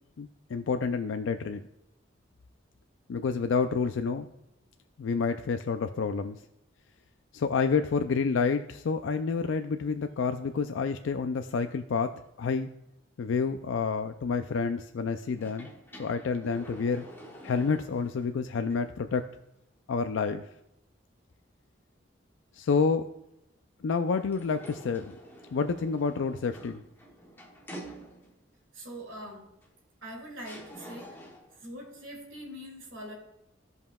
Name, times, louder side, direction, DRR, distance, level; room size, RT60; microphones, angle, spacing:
voice 1, 0.2-1.6 3.1-4.3 5.0-6.4 7.3-12.7 13.2-15.7 16.0-17.1 17.4-19.2 19.9-20.4 22.5-23.1 23.8-25.1 25.5-26.8, left 5 dB, 75° left, 7 dB, 0.4 m, -29 dB
sound 1, 15.3-18.3 18.7-18.8 24.2-28.5 29.6-29.7 30.4-31.6, equal, 10° left, 0.9 m, -48 dB
voice 2, 28.7-29.5 30.0-31.2 31.6-33.1, equal, 80° right, -1 dB, 2.4 m, -43 dB
16.0 x 5.4 x 2.3 m, 0.86 s
head